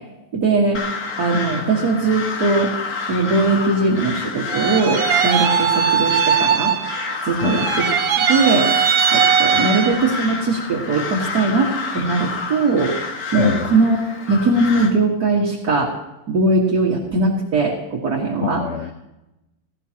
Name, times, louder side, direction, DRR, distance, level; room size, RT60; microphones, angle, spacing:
voice 1, 0.3-0.8 1.2-2.7 3.1-6.7 7.2-8.7 9.1-12.9 13.3-14.0 14.3-15.9 16.3-18.6, right 3 dB, 55° right, -3 dB, 2.2 m, -20 dB
Crow, 0.7-14.9, left 4 dB, 55° left, 1.8 m, -29 dB
sound 1, 4.5-7.1 7.4-10.1, right 7 dB, 85° right, 1.7 m, -19 dB
voice 2, 13.4-13.7 18.4-18.9, left 9 dB, 80° left, 7 dB, 0.6 m, -24 dB
16.5 x 16.5 x 2.9 m, 0.95 s
omnidirectional pair, 2.0 m